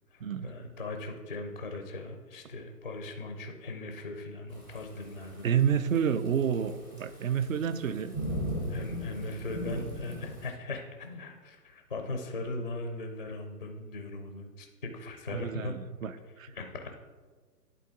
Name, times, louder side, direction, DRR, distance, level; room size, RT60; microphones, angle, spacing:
voice 1, 0.1-5.5 8.7-15.7 16.5-16.9, left 2 dB, 30° left, 4 dB, 0.4 m, -39 dB
Thunderstorm / Rain, 4.5-10.5, equal, 15° right, 0.6 m, -38 dB
voice 2, 5.4-8.1 15.3-16.5, right 8 dB, 55° right, 13 dB, 0.6 m, -29 dB
11.0 x 4.0 x 3.6 m, 1.4 s
figure-of-eight pair, 135°, 49 cm